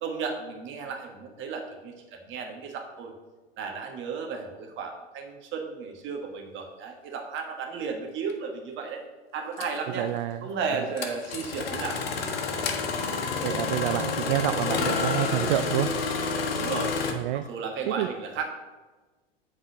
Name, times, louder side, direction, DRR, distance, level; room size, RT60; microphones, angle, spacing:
voice 1, 0.0-3.1 3.6-9.0 9.3-10.1 10.4-12.0 16.6-16.9 17.3-18.5, right 5 dB, 40° right, 3 dB, 1.5 m, -34 dB
Engine starting, 8.3-8.4 9.6-9.8 11.0-17.1, left 5 dB, 70° left, 1.1 m, -29 dB
voice 2, 10.0-10.4 10.7-10.9 13.4-15.9 16.5-16.6 17.1-17.4 17.9-18.1, right 14 dB, 55° right, 11 dB, 0.4 m, -28 dB
7.9 x 4.2 x 6.3 m, 1.3 s
figure-of-eight pair, 85°, 31 cm